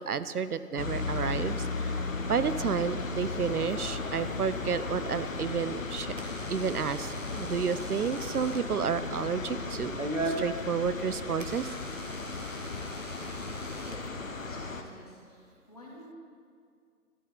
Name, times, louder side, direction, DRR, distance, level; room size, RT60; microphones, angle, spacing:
voice 1, 0.0-2.0 2.3-6.1 6.5-10.0 10.2-11.7, right 6 dB, 70° right, 14 dB, 0.5 m, -31 dB
sound 1, 0.8-14.8, left 3 dB, 55° left, 0.9 m, -35 dB
Door / Alarm, 5.4-14.7, right 2 dB, 50° right, 1.3 m, -41 dB
voice 2, 13.3-16.1, left 1 dB, 25° left, -4 dB, 1.7 m, -51 dB
12.0 x 10.5 x 4.0 m, 2.2 s
figure-of-eight pair, 160°, 47 cm